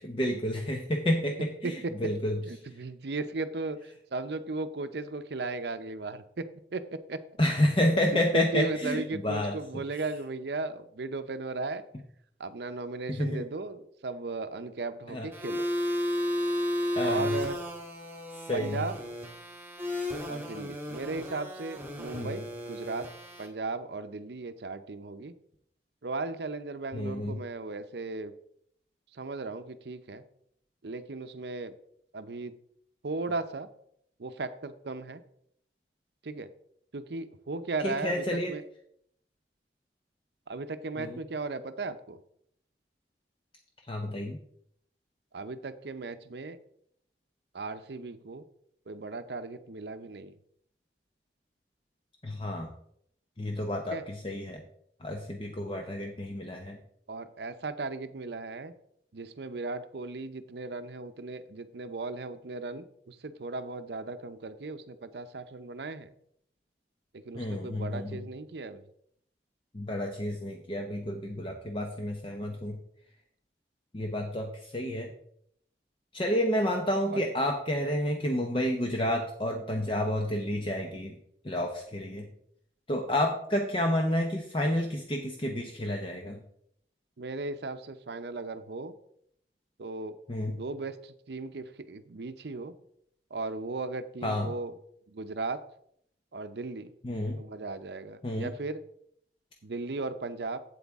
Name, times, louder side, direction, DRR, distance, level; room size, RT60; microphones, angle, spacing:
voice 1, 0.1-2.4 7.4-9.6 13.1-13.4 15.1-15.3 17.0-17.3 18.4-18.8 22.1-22.3 26.9-27.4 37.8-38.5 41.0-41.2 43.9-44.4 52.2-52.7 53.4-54.6 55.0-56.8 67.3-68.2 69.7-72.8 73.9-75.1 76.1-81.2 81.4-82.3 82.9-86.4 90.3-90.6 94.2-94.5 97.0-97.4 98.2-98.5, left 1 dB, 30° left, 2 dB, 0.7 m, -30 dB
voice 2, 1.4-1.8 2.5-7.2 8.3-11.8 12.4-15.7 17.0-17.6 18.5-19.0 20.3-23.1 23.4-25.3 26.0-28.3 29.1-30.2 30.8-31.7 32.1-32.5 33.0-33.7 34.2-35.2 36.2-36.5 36.9-38.6 40.5-42.2 45.3-46.6 47.5-48.4 48.9-50.3 53.9-54.0 57.1-58.7 59.1-66.1 67.1-68.8 77.1-77.2 87.2-88.9 89.8-90.2 90.4-92.7 93.3-94.7 95.1-95.6 96.3-96.9 97.4-98.8 99.6-100.6, right 3 dB, 75° right, 11 dB, 0.6 m, -36 dB
sound 1, 15.3-23.5, left 1 dB, 10° right, 1.7 m, -33 dB
8.5 x 8.1 x 3.5 m, 0.70 s
head